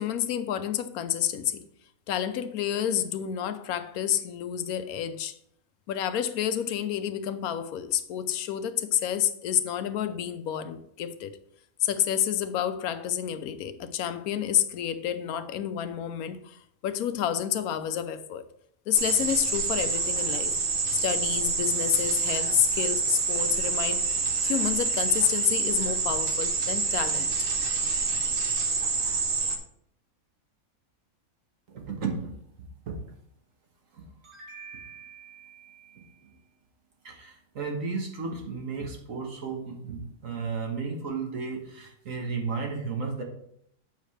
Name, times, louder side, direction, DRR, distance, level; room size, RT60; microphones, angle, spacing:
voice 1, 0.0-1.7 2.1-5.4 5.9-11.4 11.8-18.4 18.9-20.5 20.9-27.5, left 10 dB, 85° left, 1.1 m, -29 dB
sound 1, 18.9-29.6, right 4 dB, 45° right, 0.9 m, -27 dB
voice 2, 31.7-32.2 32.9-33.0 33.9-36.4 37.0-43.2, right 4 dB, 65° right, 1.6 m, -34 dB
8.3 x 5.6 x 3.2 m
omnidirectional pair, 1.5 m